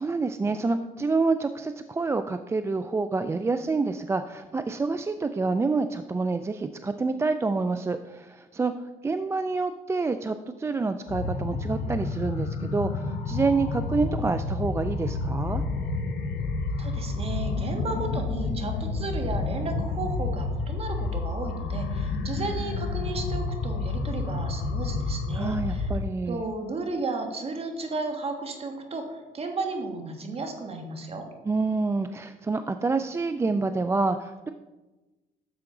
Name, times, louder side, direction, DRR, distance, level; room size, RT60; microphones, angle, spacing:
voice 1, 0.0-15.6 25.3-26.4 31.4-34.5, right 3 dB, 15° right, 9 dB, 0.3 m, -27 dB
sound 1, 11.1-26.0, left 3 dB, 80° left, 1.2 m, -30 dB
voice 2, 16.8-25.9 26.3-31.3, right 3 dB, 35° right, 4 dB, 1.5 m, -34 dB
10.5 x 7.0 x 3.8 m, 1.2 s
cardioid pair, 110°, 17 cm